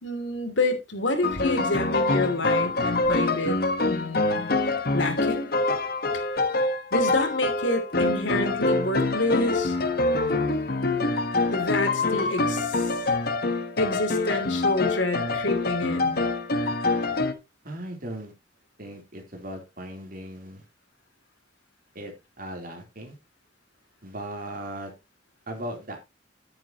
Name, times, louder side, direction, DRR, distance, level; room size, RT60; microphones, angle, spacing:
voice 1, 0.0-3.6 3.8-4.5 4.9-5.5 6.9-9.8 11.5-12.9 13.8-16.2, left 2 dB, 75° left, 2.8 m, -28 dB
sound 1, 1.2-17.3, left 2 dB, 50° left, 1.3 m, -25 dB
voice 2, 17.6-18.3 18.8-20.6 22.0-22.1 22.4-23.1 24.0-24.9 25.5-26.1, right 1 dB, 50° right, 3.5 m, -37 dB
11.0 x 9.5 x 3.0 m
head